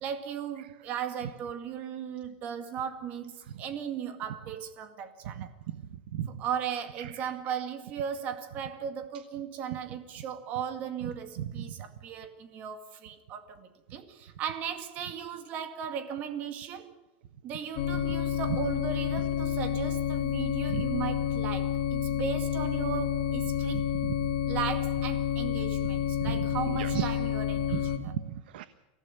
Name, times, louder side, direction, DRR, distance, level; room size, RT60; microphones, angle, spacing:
voice 1, 0.0-5.5 6.3-16.9 17.4-23.9 24.5-28.2, right 8 dB, 30° right, 2.1 m, -37 dB
voice 2, 5.7-6.4 7.0-7.3 11.4-11.8 20.7-20.8 23.7-24.1 26.2-27.1 27.7-28.7, right 11 dB, 75° right, 1.1 m, -36 dB
sound 1, 17.8-28.0, left 9 dB, 60° left, 2.7 m, -29 dB
24.5 x 16.5 x 9.9 m
supercardioid pair, 175°, 5 cm